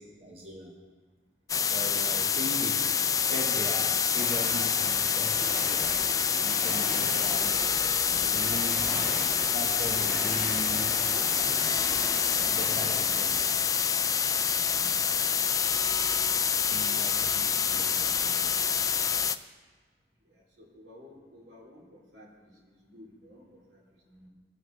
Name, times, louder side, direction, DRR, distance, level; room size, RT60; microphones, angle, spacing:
voice 1, 0.2-0.7 1.7-2.9 3.3-5.9 6.4-7.5 8.1-8.9 9.5-11.0 12.4-13.4 14.6-15.0 16.7-18.5, equal, 35° right, -1 dB, 1.2 m, -39 dB
sound 1, 1.5-19.4, left 7 dB, 20° left, 0.3 m, -27 dB
sound 2, 4.2-13.5, equal, 15° right, 2.0 m, -39 dB
voice 2, 15.2-15.5 20.2-24.3, left 1 dB, 80° right, -3 dB, 3.1 m, -54 dB
19.5 x 9.3 x 3.2 m, 1.5 s
head